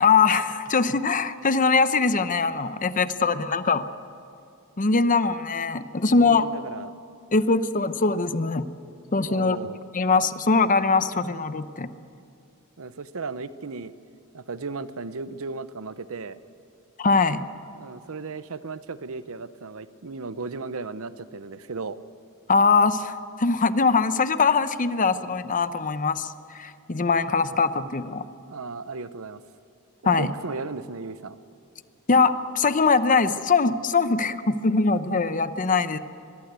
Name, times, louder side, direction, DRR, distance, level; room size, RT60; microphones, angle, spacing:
voice 1, 0.0-3.8 4.8-6.5 7.3-8.7 9.1-9.6 9.9-11.9 17.0-17.5 22.5-28.2 30.0-30.3 32.1-36.0, left 4 dB, 35° left, 12 dB, 0.8 m, -22 dB
voice 2, 6.2-6.9 9.2-9.8 12.8-13.9 14.3-16.4 17.7-22.0 27.5-27.6 28.5-29.4 30.0-31.4, right 4 dB, 70° right, 14 dB, 0.8 m, -35 dB
23.5 x 21.5 x 8.2 m, 2.6 s
head